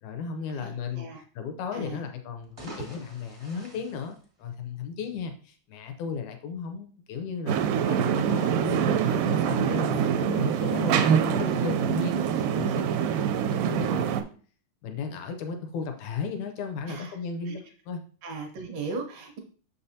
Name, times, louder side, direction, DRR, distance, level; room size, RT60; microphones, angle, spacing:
voice 1, 0.0-1.1 1.4-12.8 13.4-14.2 14.8-18.0, left 5 dB, 80° left, 6 dB, 1.7 m, -35 dB
voice 2, 0.6-1.2 1.7-2.0 11.7-12.5 16.9-17.2 17.5-17.6 18.2-19.4, right 4 dB, 60° right, 3 dB, 1.9 m, -37 dB
sound 1, 2.3-5.0, right 2 dB, 25° right, 0.6 m, -45 dB
sound 2, 7.5-14.2, right 8 dB, 80° right, 2.1 m, -25 dB
6.6 x 5.5 x 2.7 m, 0.42 s
omnidirectional pair, 3.9 m